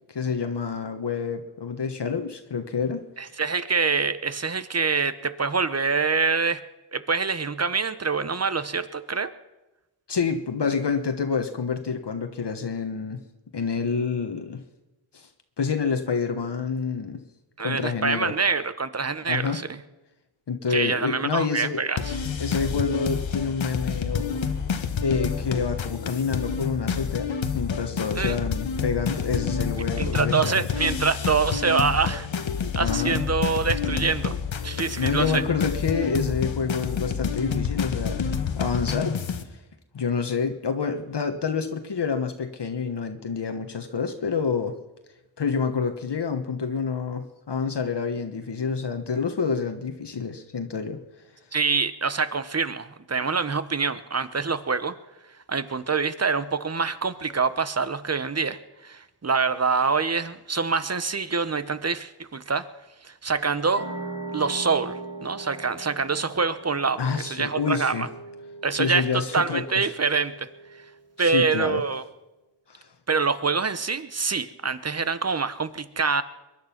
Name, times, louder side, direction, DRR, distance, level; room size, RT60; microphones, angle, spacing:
voice 1, 0.1-3.1 10.1-13.2 13.5-14.6 15.1-15.3 15.6-17.2 17.6-18.3 19.3-19.6 20.5-21.8 22.4-24.5 25.0-30.6 32.8-33.2 35.0-38.3 38.6-39.2 39.9-44.8 45.4-51.0 67.0-68.1 68.8-69.8 71.2-71.8 72.7-72.9, left 5 dB, 60° left, 6 dB, 1.3 m, -28 dB
voice 2, 3.2-6.6 6.9-9.3 17.6-19.8 20.7-22.2 28.2-28.4 30.0-32.3 32.7-34.4 34.6-35.4 51.5-54.9 55.5-62.6 63.0-63.8 64.3-68.1 68.6-70.5 71.2-72.0 73.1-76.2, right 4 dB, 35° right, 14 dB, 1.0 m, -25 dB
sound 1, 22.0-39.4, left 6 dB, 80° left, 1.3 m, -28 dB
sound 2, 63.7-70.9, right 2 dB, 70° right, 7.9 m, -40 dB
22.5 x 10.5 x 5.9 m, 1.0 s
wide cardioid pair, 65°, 46 cm